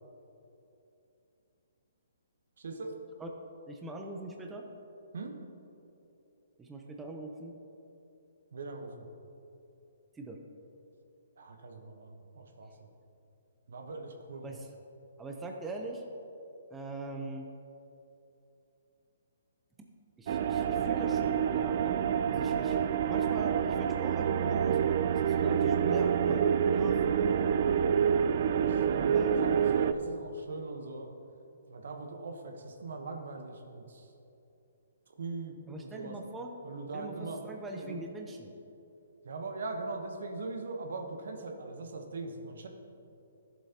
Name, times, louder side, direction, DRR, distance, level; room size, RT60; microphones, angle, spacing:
voice 1, 2.6-3.0 5.1-5.4 8.5-9.1 11.4-12.9 13.7-14.5 28.4-31.1 31.7-34.1 35.2-36.1 36.6-37.4 37.7-38.0 39.2-42.7, right 3 dB, 70° right, 4 dB, 1.1 m, -41 dB
voice 2, 3.7-4.6 6.6-7.6 10.2-10.4 14.4-14.7 15.2-16.0 16.7-17.5 20.2-22.0 22.3-27.6 29.1-29.3 35.7-36.5 36.9-38.5, right 2 dB, 10° right, 2 dB, 0.7 m, -42 dB
sound 1, 20.3-29.9, right 8 dB, 50° right, 0.4 m, -27 dB
13.5 x 7.4 x 2.9 m, 2.8 s
hypercardioid pair, 135°, 0 cm